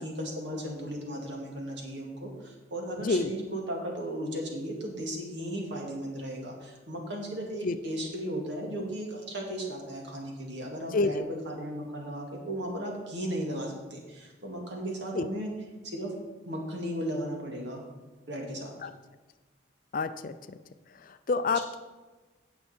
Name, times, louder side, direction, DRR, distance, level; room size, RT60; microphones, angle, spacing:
voice 1, 0.0-15.5 15.8-16.1 16.5-17.8 18.3-18.7, right 1 dB, 60° right, 0 dB, 2.3 m, -36 dB
voice 2, 10.9-11.2 15.1-15.3 18.8-18.9 19.9-20.6 21.0-21.8, left 3 dB, 45° left, 11 dB, 0.5 m, -28 dB
16.5 x 5.7 x 4.4 m, 1.2 s
head